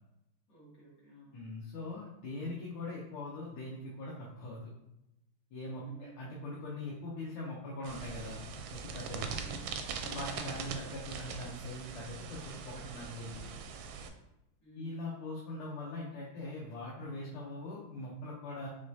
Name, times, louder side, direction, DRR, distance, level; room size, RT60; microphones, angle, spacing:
voice 1, 0.5-1.4 5.8-6.2 9.1-10.5 14.6-15.0, right 3 dB, 45° left, -6 dB, 2.0 m, -55 dB
voice 2, 1.3-4.6 5.5-8.4 8.7-9.3 10.0-13.5 14.7-18.7, left 2 dB, 80° left, -4 dB, 1.7 m, -42 dB
sound 1, 7.8-14.1, right 5 dB, 75° right, 1.2 m, -41 dB
5.2 x 3.2 x 2.7 m, 0.91 s
omnidirectional pair, 2.4 m